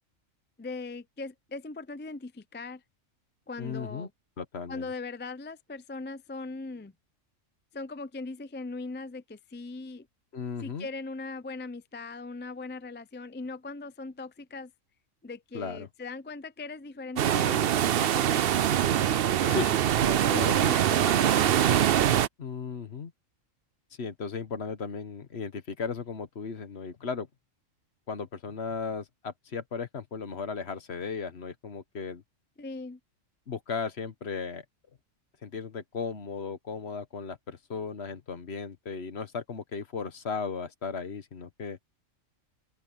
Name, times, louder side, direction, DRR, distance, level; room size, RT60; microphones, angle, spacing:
voice 1, 0.6-2.8 3.5-4.1 4.7-6.9 7.7-10.1 10.6-14.7 15.2-18.9 19.2-19.8 20.3-21.6 32.6-33.0, left 3 dB, 15° left, 0.3 m, -40 dB
voice 2, 3.6-4.1 4.4-4.9 10.3-10.9 15.5-15.9 19.5-19.7 20.0-20.5 22.4-23.1 24.0-27.3 28.1-32.2 33.5-34.6 35.4-41.8, left 5 dB, 55° left, 1.4 m, -36 dB
sound 1, 17.2-22.3, right 10 dB, 60° right, 0.7 m, -23 dB
open air
omnidirectional pair, 1.4 m